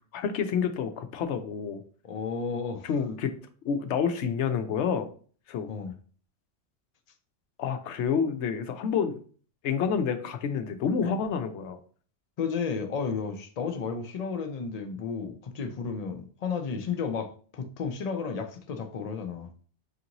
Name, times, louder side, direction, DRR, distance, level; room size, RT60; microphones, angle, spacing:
voice 1, 0.1-1.8 2.8-3.3 3.6-5.1 5.5-5.7 7.6-9.2 9.6-11.8, left 6 dB, 75° left, 0.9 m, -28 dB
voice 2, 2.0-2.9 5.7-5.9 11.0-11.1 12.4-19.5, left 5 dB, 45° left, 0.5 m, -33 dB
5.9 x 2.6 x 2.9 m
omnidirectional pair, 1.2 m